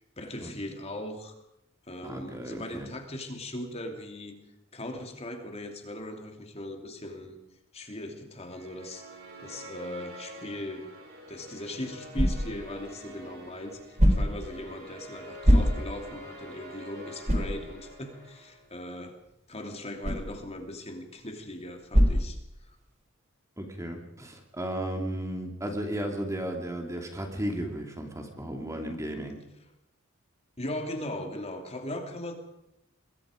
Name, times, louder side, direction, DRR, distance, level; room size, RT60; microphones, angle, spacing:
voice 1, 0.2-1.4 1.9-4.4 4.7-7.4 7.7-9.1 9.4-10.9 11.3-19.2 19.5-22.4 30.6-32.3, left 1 dB, 30° left, 4 dB, 2.9 m, -39 dB
voice 2, 2.0-2.9 23.6-29.4, right 1 dB, 15° right, 3 dB, 2.7 m, -34 dB
sound 1, 8.4-18.8, right 1 dB, 50° right, 6.6 m, -47 dB
sound 2, 11.3-23.0, equal, 35° right, 4.3 m, -29 dB
26.0 x 22.0 x 5.2 m, 0.82 s
head